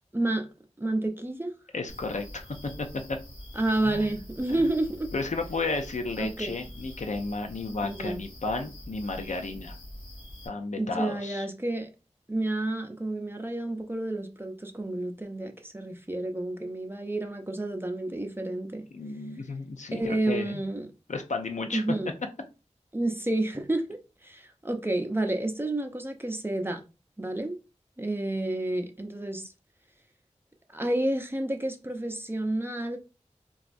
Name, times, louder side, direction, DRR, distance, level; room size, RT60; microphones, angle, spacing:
voice 1, 0.1-0.5 0.8-1.5 3.5-5.1 6.2-6.5 7.8-8.2 10.8-11.9 12.3-18.9 19.9-20.9 21.7-22.1 22.9-26.8 27.2-27.6 28.0-29.5 30.7-33.0, right 1 dB, 20° right, 0.5 m, -30 dB
voice 2, 1.7-3.2 3.8-4.1 5.1-9.8 10.4-11.5 18.9-20.6 21.1-21.8, left 3 dB, 75° left, 0.5 m, -33 dB
sound 1, 1.9-10.5, left 1 dB, 35° left, 1.7 m, -45 dB
4.0 x 2.3 x 2.5 m
wide cardioid pair, 60°, 12 cm